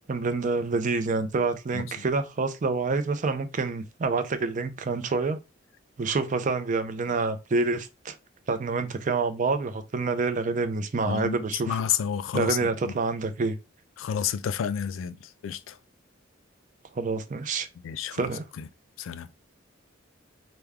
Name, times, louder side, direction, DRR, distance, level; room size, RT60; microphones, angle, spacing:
voice 1, 0.1-5.4 6.0-8.2 8.5-11.8 12.3-13.6 17.0-17.7 18.1-18.5, right 3 dB, 40° right, 0.5 m, -27 dB
voice 2, 11.0-12.9 14.0-15.2 15.4-15.8 17.8-18.3 18.6-18.7 19.0-19.3, left 8 dB, 80° left, 0.3 m, -30 dB
3.4 x 2.1 x 3.4 m
head